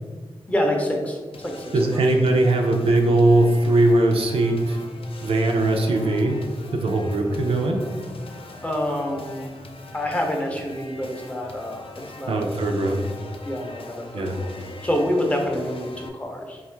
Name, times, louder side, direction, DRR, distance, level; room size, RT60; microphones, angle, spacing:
voice 1, 0.5-2.0 8.6-9.5 9.9-12.4 12.8-13.1 13.5-14.5 14.8-16.6, left 1 dB, 15° left, 1 dB, 0.5 m, -27 dB
sound 1, 1.3-16.1, left 2 dB, 70° left, 0.4 m, -42 dB
voice 2, 1.7-4.8 5.2-6.4 6.7-7.8 12.3-13.0 14.1-14.4, right 2 dB, 80° right, 3 dB, 0.5 m, -20 dB
3.5 x 2.4 x 4.3 m, 1.4 s
wide cardioid pair, 170°, 10 cm